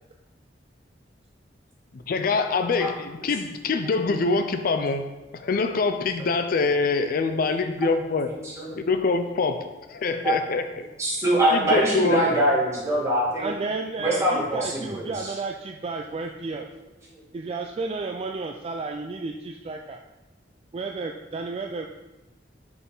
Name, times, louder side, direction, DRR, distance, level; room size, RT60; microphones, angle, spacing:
voice 1, 2.1-5.1 5.3-8.3 8.8-10.6 11.5-12.2, left 4 dB, 50° left, 8 dB, 0.4 m, -24 dB
voice 2, 8.3-8.6 10.2-10.4 11.0-13.5 14.0-15.3 17.1-17.2, right 1 dB, 15° right, -6 dB, 2.0 m, -23 dB
voice 3, 13.4-16.7 17.3-20.0 20.7-21.9, right 3 dB, 35° right, 3 dB, 0.3 m, -32 dB
6.0 x 5.5 x 3.9 m, 1.0 s
head